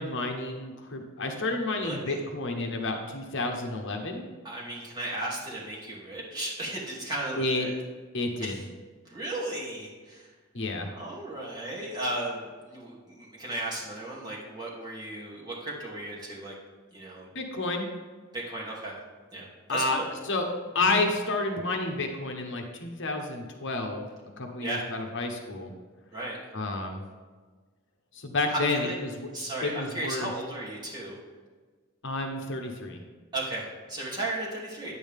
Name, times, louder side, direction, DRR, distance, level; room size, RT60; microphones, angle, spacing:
voice 1, 0.0-4.2 7.4-7.6 8.1-8.5 10.5-10.9 17.3-17.9 19.7-20.0 20.3-20.5 20.7-24.1 24.4-25.7 26.5-27.0 28.1-29.3 29.6-30.3 32.0-33.0, left 2 dB, 60° left, 3 dB, 1.1 m, -30 dB
voice 2, 1.8-2.2 4.4-7.7 8.4-8.6 9.0-10.3 10.9-16.5 16.9-17.3 18.3-19.0 19.3-20.1 24.6-24.9 26.1-26.4 28.5-28.9 29.3-31.1 33.3-34.9, right 1 dB, 20° right, -6 dB, 2.6 m, -35 dB
9.7 x 8.6 x 3.6 m, 1.4 s
head